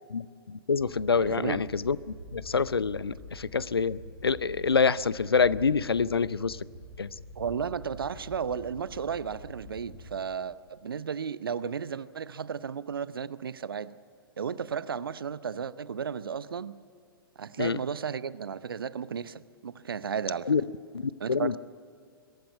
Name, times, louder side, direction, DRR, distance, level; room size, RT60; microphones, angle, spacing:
voice 1, 0.1-2.0 2.3-6.6 7.0-7.1 17.6-17.8 20.5-20.6 20.9-21.6, left 5 dB, 75° left, 0.6 m, -26 dB
sound 1, 0.7-10.1, equal, 85° right, 5.2 m, -46 dB
voice 2, 1.2-1.6 7.4-13.9 14.4-16.8 17.4-20.5 21.2-21.6, right 7 dB, 65° right, 0.7 m, -34 dB
23.0 x 13.0 x 9.4 m
figure-of-eight pair, 110°, 13 cm